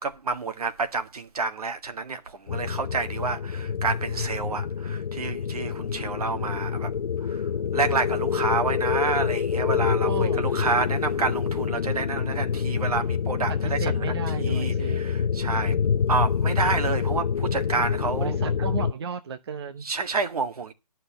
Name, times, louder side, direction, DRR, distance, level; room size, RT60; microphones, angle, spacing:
voice 1, 0.0-6.9 7.3-15.7 16.1-18.4 19.8-20.7, right 4 dB, 65° right, 1.9 m, -29 dB
sound 1, 2.5-18.9, left 7 dB, 80° left, 0.5 m, -26 dB
voice 2, 10.1-10.5 13.5-15.0 18.2-19.8, right 6 dB, 40° right, 0.9 m, -34 dB
11.0 x 5.7 x 7.0 m
hypercardioid pair, 160°, 21 cm